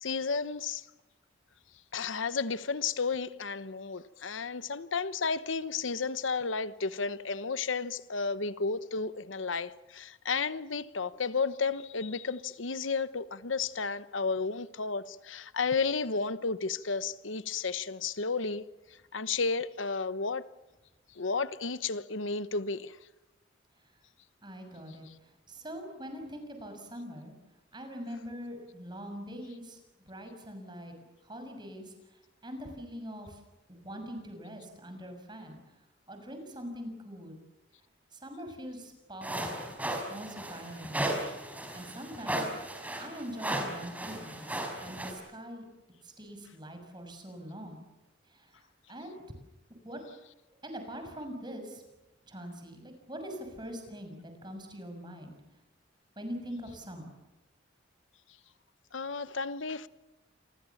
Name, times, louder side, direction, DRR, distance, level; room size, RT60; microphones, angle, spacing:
voice 1, 0.0-0.8 1.9-18.6 19.1-20.4 21.2-22.9 58.9-59.9, left 4 dB, 90° left, 1.0 m, -32 dB
voice 2, 24.4-27.3 27.7-29.8 30.1-30.9 31.2-33.4 33.7-35.6 36.1-37.4 38.1-39.7 40.1-41.4 41.7-45.7 46.0-47.8 48.3-48.6 48.9-49.2 49.8-50.0 50.6-51.8 52.3-55.3 56.2-57.1, equal, 25° right, 6.4 m, -43 dB
sound 1, 39.2-45.1, right 1 dB, 10° right, 4.7 m, -35 dB
28.5 x 24.0 x 7.2 m
head